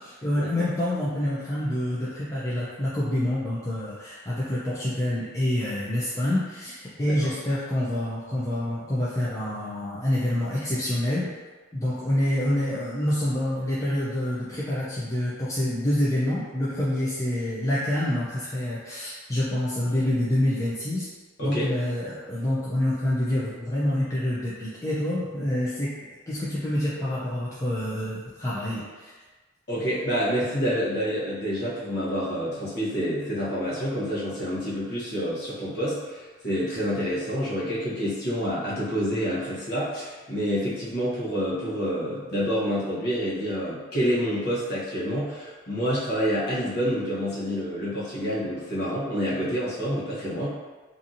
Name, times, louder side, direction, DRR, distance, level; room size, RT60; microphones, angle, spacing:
voice 1, 0.0-11.3 11.7-21.1 21.4-25.9 26.3-29.1, left 1 dB, 15° left, -9 dB, 0.4 m, -27 dB
voice 2, 29.7-50.5, equal, 50° left, -8 dB, 0.9 m, -28 dB
2.8 x 2.5 x 2.5 m, 1.3 s
head